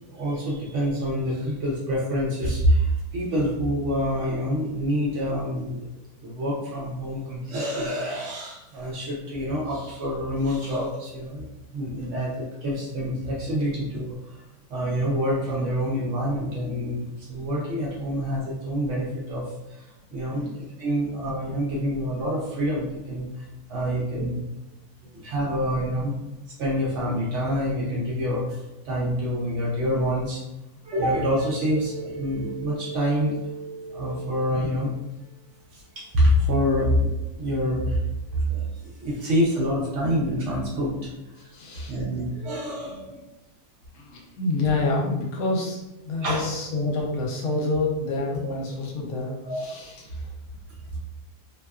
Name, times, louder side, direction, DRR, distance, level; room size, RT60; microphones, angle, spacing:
voice 1, 0.1-5.9 6.2-11.5 11.7-14.4 14.7-24.4 25.0-26.1 26.5-30.4 30.8-35.0 35.7-37.1 37.4-38.0 38.3-43.2 46.2-46.5 48.4-48.5 49.5-49.6, equal, 65° right, -4 dB, 0.8 m, -27 dB
voice 2, 41.5-42.0 42.3-42.4 42.8-42.9 43.9-50.3, left 3 dB, 75° left, -2 dB, 1.1 m, -28 dB
2.7 x 2.2 x 2.3 m, 0.95 s
omnidirectional pair, 1.6 m